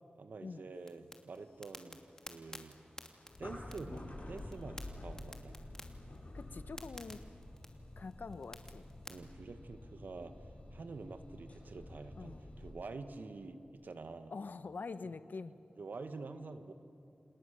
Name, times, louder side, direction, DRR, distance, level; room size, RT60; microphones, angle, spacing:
voice 1, 0.1-2.0 2.3-2.8 3.4-5.6 9.1-10.3 10.7-14.3 15.8-16.7, right 3 dB, 80° right, 8 dB, 1.6 m, -47 dB
sound 1, 0.8-9.1, left 1 dB, 20° left, 2.8 m, -53 dB
sound 2, 1.4-12.7, left 1 dB, 50° left, 7.7 m, -50 dB
voice 2, 6.3-7.3 8.0-8.8 12.2-12.5 14.3-15.6, left 4 dB, 75° left, 12 dB, 1.1 m, -45 dB
29.5 x 28.0 x 6.9 m, 2.6 s
cardioid pair, 55°, 3 cm